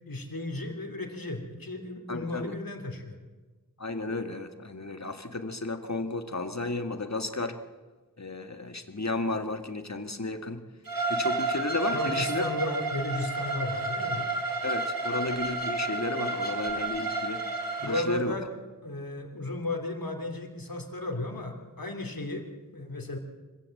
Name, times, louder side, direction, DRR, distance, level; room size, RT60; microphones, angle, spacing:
voice 1, 0.1-3.2 11.9-14.3 17.7-18.5 18.8-22.5 22.7-23.2, left 1 dB, 80° left, 4 dB, 3.0 m, -34 dB
voice 2, 2.1-2.5 3.8-7.6 8.2-10.6 11.1-12.4 14.6-17.4 17.8-18.4, left 2 dB, 50° left, 7 dB, 1.9 m, -33 dB
Bowed string instrument, 10.9-18.0, right 3 dB, 80° right, 2.5 m, -31 dB
25.0 x 15.5 x 7.8 m, 1.3 s
wide cardioid pair, 40°, 34 cm